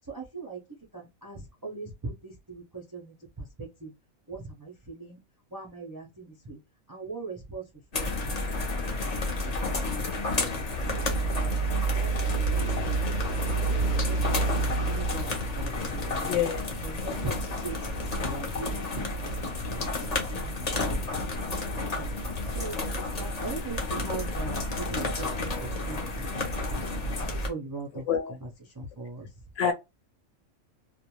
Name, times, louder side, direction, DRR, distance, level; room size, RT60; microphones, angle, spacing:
voice 1, 0.1-0.6 0.9-3.9 4.3-5.2 5.5-6.6 6.9-7.7 7.9-8.9 9.2-12.8 13.3-16.3 16.8-17.8 18.2-21.3 21.7-26.8 27.3-28.0 28.7-29.3, right 4 dB, 35° right, 0.3 m, -41 dB
sound 1, 7.9-27.5, equal, 45° left, 0.6 m, -30 dB
voice 2, 16.2-16.8 27.9-28.3 29.6-29.7, left 8 dB, 70° left, 0.9 m, -27 dB
2.5 x 2.2 x 2.9 m
omnidirectional pair, 1.4 m